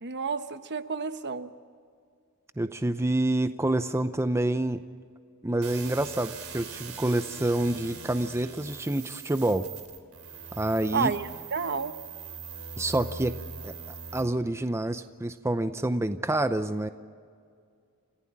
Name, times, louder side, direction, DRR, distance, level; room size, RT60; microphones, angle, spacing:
voice 1, 0.0-1.5 10.9-11.9, right 5 dB, 55° right, 10 dB, 1.1 m, -30 dB
voice 2, 2.6-4.8 5.4-9.7 10.5-11.1 12.8-13.3 13.6-13.7 14.1-16.9, right 1 dB, 15° right, 10 dB, 0.6 m, -27 dB
sound 1, 5.6-14.2, right 5 dB, 85° right, 3.2 m, -42 dB
29.0 x 15.5 x 8.8 m, 2.2 s
head